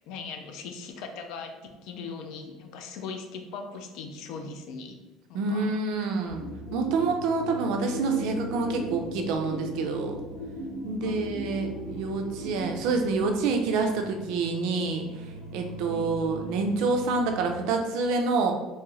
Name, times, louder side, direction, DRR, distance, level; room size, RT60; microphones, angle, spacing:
voice 1, 0.1-5.0 5.3-5.7 11.0-11.3 15.8-16.1, left 5 dB, 55° left, 5 dB, 0.4 m, -39 dB
voice 2, 5.3-6.4 6.7-10.2 10.8-15.1 15.5-18.5, right 4 dB, 60° right, 4 dB, 0.4 m, -27 dB
sound 1, 6.3-17.5, left 1 dB, 80° left, 0.9 m, -38 dB
2.7 x 2.4 x 3.1 m, 1.1 s
cardioid pair, 180°, 0 cm